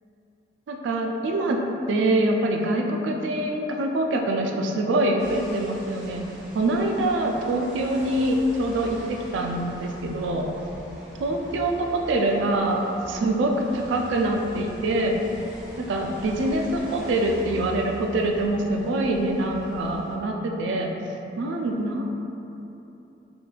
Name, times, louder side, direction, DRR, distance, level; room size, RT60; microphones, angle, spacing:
voice 1, 0.7-1.6 1.9-6.3 6.5-10.5 11.2-15.2 15.9-20.9 21.4-22.1, right 1 dB, 75° right, 2 dB, 0.3 m, -24 dB
sound 1, 5.2-20.1, equal, 5° right, 0.4 m, -42 dB
3.7 x 2.3 x 2.4 m, 2.9 s
head